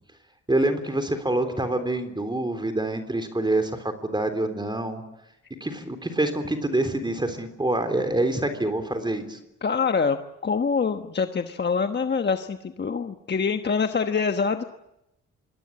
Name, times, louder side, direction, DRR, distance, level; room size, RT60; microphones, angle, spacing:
voice 1, 0.5-5.0 5.6-9.4, right 1 dB, 15° right, 7 dB, 3.6 m, -26 dB
voice 2, 9.6-14.6, left 5 dB, 35° left, 7 dB, 1.2 m, -25 dB
26.0 x 20.0 x 8.7 m, 0.87 s
cardioid pair, 80°, 29 cm